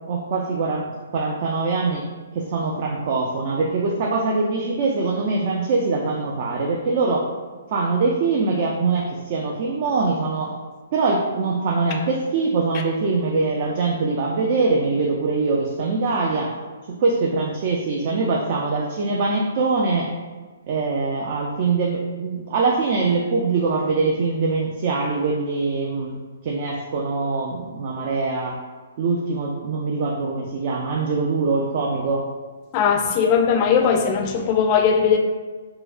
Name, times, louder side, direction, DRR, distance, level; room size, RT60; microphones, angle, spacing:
voice 1, 0.1-2.0 2.3-7.3 7.7-10.5 10.9-16.5 16.9-20.1 20.7-26.2 26.4-28.6 29.0-32.2, right 3 dB, 45° right, -1 dB, 0.4 m, -23 dB
voice 2, 32.7-35.2, left 6 dB, 35° left, 4 dB, 0.4 m, -19 dB
4.6 x 2.0 x 2.4 m, 1.4 s
hypercardioid pair, 145°, 0 cm